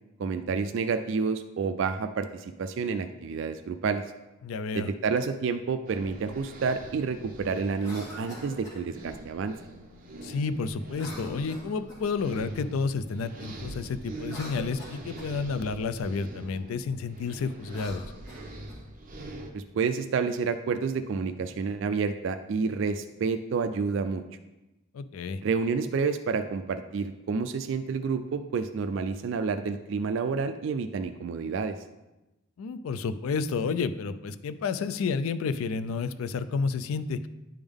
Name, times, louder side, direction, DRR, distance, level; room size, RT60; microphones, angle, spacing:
voice 1, 0.2-4.0 4.7-9.6 19.5-24.2 25.4-31.8, right 5 dB, 65° right, 9 dB, 0.3 m, -29 dB
voice 2, 4.4-4.9 10.2-18.0 24.9-25.4 32.6-37.3, left 4 dB, 80° left, 12 dB, 0.3 m, -30 dB
sound 1, 5.9-19.5, right 1 dB, 40° right, 0.8 m, -43 dB
Cough, 7.7-8.8 10.9-12.2 14.1-15.3 17.6-18.8, equal, 15° left, 1.8 m, -45 dB
10.5 x 3.5 x 3.5 m, 1.0 s
head